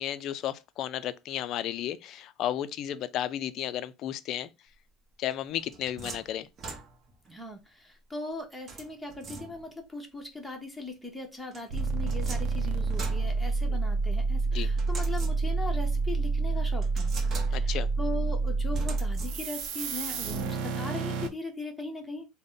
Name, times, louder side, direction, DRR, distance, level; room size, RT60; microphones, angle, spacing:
voice 1, 0.0-4.5 5.2-6.5 13.7-13.8 14.5-14.7 17.5-17.9, left 11 dB, 55° left, 0.4 m, -33 dB
sound 1, 5.3-7.3 8.7-9.9 11.5-14.0 14.8-15.8 16.2-16.3 16.8-17.9 18.7-19.7, right 4 dB, 35° right, 0.9 m, -43 dB
voice 2, 7.3-17.1 17.5-22.3, left 2 dB, 5° left, 0.8 m, -39 dB
sound 2, 11.7-21.3, right 3 dB, 70° right, 0.6 m, -28 dB
3.6 x 2.1 x 3.8 m
cardioid pair, 135°, 0 cm